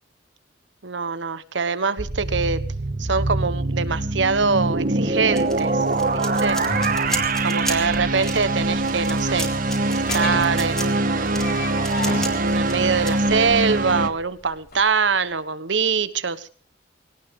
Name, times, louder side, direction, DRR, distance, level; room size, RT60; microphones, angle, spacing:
voice 1, 0.8-2.6 3.0-5.8 6.1-6.6 7.4-9.5 9.9-11.6 12.0-16.5, right 5 dB, 85° right, 13 dB, 1.3 m, -24 dB
sound 1, 2.0-14.1, right 2 dB, 50° right, 1.4 m, -23 dB
sound 2, 5.3-14.8, left 2 dB, 55° left, 4.7 m, -36 dB
sound 3, 5.4-13.1, equal, 5° left, 3.0 m, -33 dB
21.5 x 18.0 x 3.8 m, 0.41 s
head